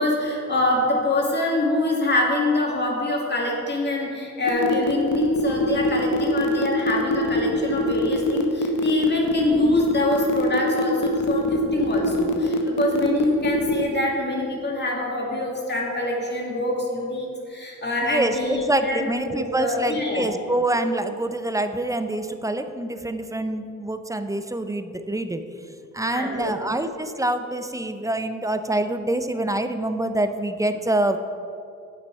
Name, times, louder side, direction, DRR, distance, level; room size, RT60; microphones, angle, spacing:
voice 1, 0.0-20.3 26.0-26.5, left 2 dB, 35° left, -2 dB, 2.1 m, -25 dB
sound 1, 4.5-13.8, left 1 dB, 90° left, 0.8 m, -23 dB
voice 2, 18.0-25.4 25.9-31.2, right 1 dB, 10° right, 9 dB, 0.5 m, -26 dB
8.9 x 7.4 x 4.7 m, 2.5 s
cardioid pair, 80°, 30 cm